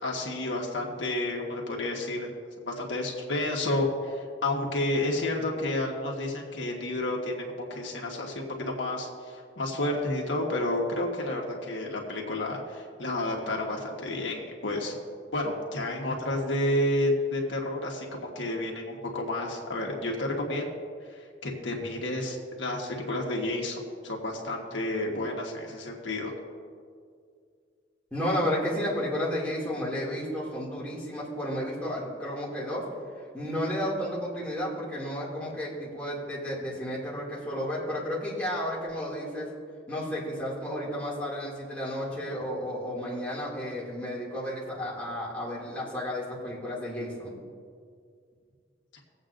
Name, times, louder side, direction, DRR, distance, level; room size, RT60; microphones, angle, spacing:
voice 1, 0.0-2.3 2.6-9.1 9.6-15.0 15.3-20.7 21.4-23.8 24.0-26.3, left 1 dB, 75° left, -1 dB, 1.4 m, -30 dB
voice 2, 28.1-32.8 33.3-39.5 39.9-47.3, equal, 5° left, -7 dB, 2.3 m, -32 dB
21.0 x 8.0 x 2.6 m, 2.1 s
head